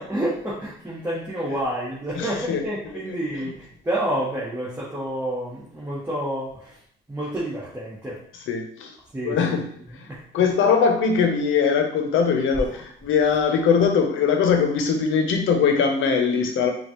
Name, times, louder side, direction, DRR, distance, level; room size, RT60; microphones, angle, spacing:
voice 1, 0.0-6.8 7.1-8.2 9.1-9.6 10.1-10.5 12.5-12.6, right 1 dB, 10° right, -8 dB, 1.3 m, -29 dB
voice 2, 2.1-2.6 8.5-8.9 9.2-9.6 10.0-10.1 10.3-16.7, left 6 dB, 80° left, 4 dB, 0.8 m, -21 dB
5.0 x 2.4 x 3.0 m, 0.65 s
cardioid pair, 90°, 20 cm